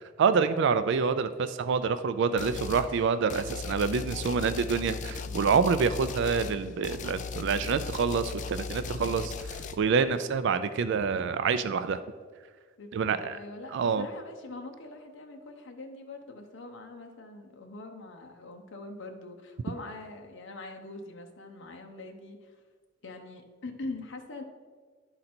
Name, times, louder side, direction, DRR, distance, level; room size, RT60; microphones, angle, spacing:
voice 1, 0.2-12.0 12.9-13.4 13.7-14.1, right 5 dB, 65° right, 12 dB, 0.3 m, -27 dB
sound 1, 2.4-2.9 3.3-9.8, left 5 dB, 40° left, 0.4 m, -37 dB
voice 2, 5.3-5.6 12.8-22.6 23.0-24.4, left 2 dB, 65° left, 4 dB, 0.7 m, -43 dB
11.0 x 3.9 x 4.3 m, 1.5 s
head